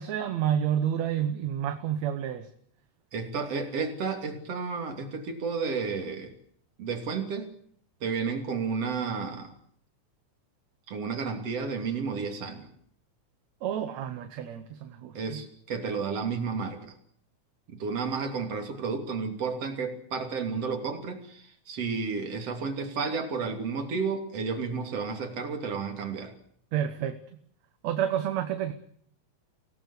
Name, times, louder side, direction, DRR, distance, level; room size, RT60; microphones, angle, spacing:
voice 1, 0.0-2.5 13.6-15.4 26.7-27.2 27.8-28.7, right 9 dB, 70° right, 8 dB, 2.3 m, -29 dB
voice 2, 3.1-6.3 6.8-7.5 8.0-9.5 10.9-12.7 15.2-16.9 17.7-26.3, right 5 dB, 50° right, 4 dB, 3.9 m, -32 dB
24.5 x 18.0 x 8.3 m, 0.65 s
omnidirectional pair, 3.5 m